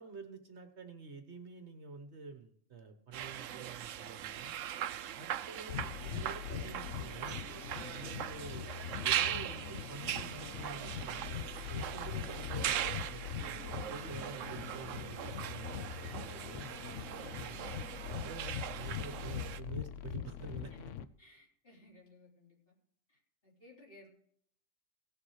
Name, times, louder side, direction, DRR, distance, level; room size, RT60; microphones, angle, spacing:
voice 1, 0.0-4.5 5.2-7.5 7.9-13.2 13.5-13.6 13.9-16.7 17.4-17.7 18.0-20.9, right 4 dB, 60° right, 7 dB, 1.4 m, -48 dB
sound 1, 3.1-19.6, right 11 dB, 75° right, 1.0 m, -40 dB
voice 2, 4.8-5.3 20.7-20.8 21.2-22.7 23.1-24.1, left 1 dB, 45° left, -4 dB, 4.0 m, -61 dB
sound 2, 5.7-21.0, left 10 dB, 75° left, 0.9 m, -43 dB
17.0 x 7.2 x 4.8 m, 0.64 s
omnidirectional pair, 1.3 m